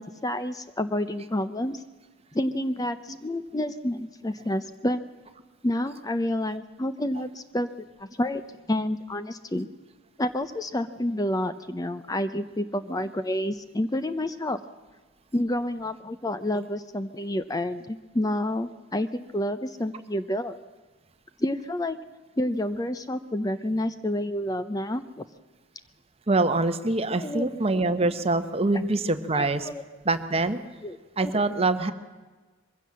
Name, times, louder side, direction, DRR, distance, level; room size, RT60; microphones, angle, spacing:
voice 1, 0.0-1.8 2.3-5.0 5.6-8.4 8.7-9.7 10.2-14.6 15.3-20.5 21.4-22.0 22.4-25.2 27.2-27.5 29.3-29.8 30.8-31.0 31.2-31.3, left 1 dB, 20° left, 11 dB, 0.6 m, -29 dB
voice 2, 26.3-29.7 30.0-30.6 31.2-31.9, right 2 dB, 30° right, 10 dB, 1.0 m, -24 dB
22.0 x 15.5 x 7.5 m, 1.3 s
head